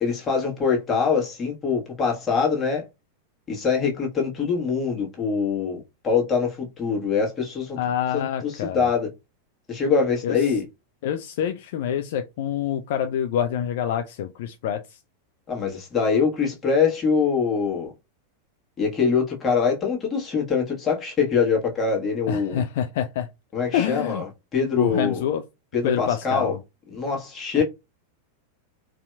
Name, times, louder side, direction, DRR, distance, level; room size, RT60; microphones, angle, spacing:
voice 1, 0.0-2.8 3.5-7.8 8.1-9.1 9.7-10.7 15.5-17.9 18.8-22.6 23.5-24.3 24.5-25.2 25.7-26.5 26.9-27.6, left 5 dB, 20° left, 1.4 m, -24 dB
voice 2, 7.8-8.9 10.2-10.4 11.0-15.0 22.3-23.3 23.7-24.2 24.8-25.4 25.8-26.6 27.6-27.7, left 9 dB, 55° left, 0.4 m, -26 dB
4.1 x 2.7 x 2.3 m
figure-of-eight pair, 90°, 0 cm